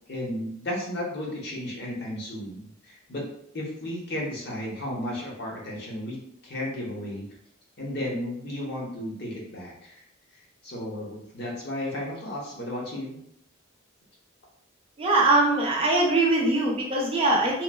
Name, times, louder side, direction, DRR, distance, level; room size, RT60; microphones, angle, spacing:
voice 1, 0.1-3.2 3.5-6.2 6.4-7.2 7.8-10.0 10.6-13.2, left 1 dB, 50° left, -3 dB, 0.7 m, -34 dB
voice 2, 15.0-17.6, right 2 dB, 25° right, -2 dB, 0.4 m, -22 dB
3.0 x 2.2 x 2.2 m, 0.73 s
head